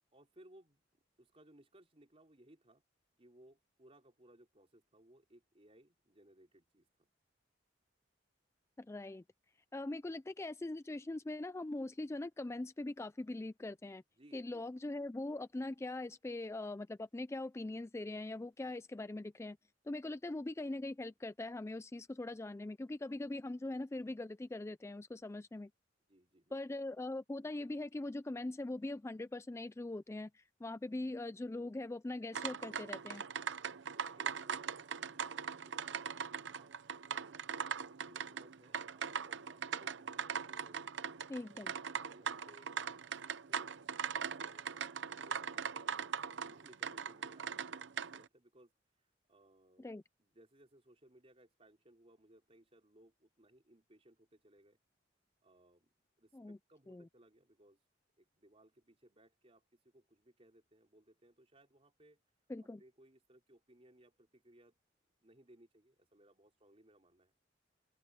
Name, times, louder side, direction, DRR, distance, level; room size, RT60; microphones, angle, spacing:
voice 1, 0.1-2.8 3.2-7.1 14.1-14.7 26.1-26.6 33.9-36.7 37.0-37.4 37.9-41.0 42.0-48.7 49.3-49.9 50.2-54.8 55.4-57.8 58.2-62.2 62.6-64.8 65.2-67.3, right 1 dB, 35° right, 3.8 m, -64 dB
voice 2, 8.8-9.2 9.7-14.0 14.3-19.6 19.9-25.7 26.5-33.2 41.3-41.7 49.8-50.0 56.3-56.6 56.9-57.1 62.5-62.8, left 2 dB, 15° left, 0.3 m, -42 dB
sound 1, 32.3-48.3, right 6 dB, 70° right, 0.7 m, -41 dB
open air
head